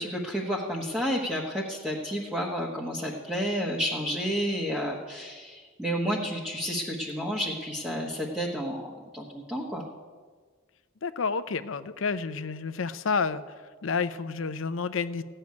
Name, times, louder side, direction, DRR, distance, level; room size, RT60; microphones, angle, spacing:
voice 1, 0.0-9.8, equal, 5° right, -3 dB, 1.2 m, -31 dB
voice 2, 11.0-13.4 13.8-15.2, left 5 dB, 70° left, 12 dB, 0.6 m, -29 dB
15.0 x 6.6 x 9.5 m, 1.5 s
head